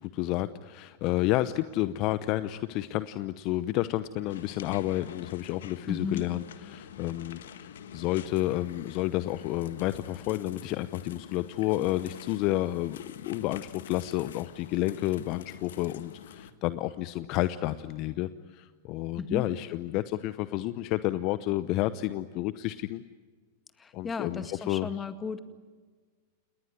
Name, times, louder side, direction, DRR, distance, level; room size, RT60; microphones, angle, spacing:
voice 1, 0.0-6.4 6.7-23.0 23.9-24.9, left 16 dB, 45° left, 14 dB, 0.8 m, -30 dB
sound 1, 4.3-16.5, left 8 dB, 70° left, 1.5 m, -47 dB
voice 2, 5.9-6.3 19.2-19.5 23.8-25.4, left 5 dB, 20° left, 10 dB, 2.0 m, -35 dB
29.0 x 20.5 x 9.6 m, 1.5 s
hypercardioid pair, 100°, 0 cm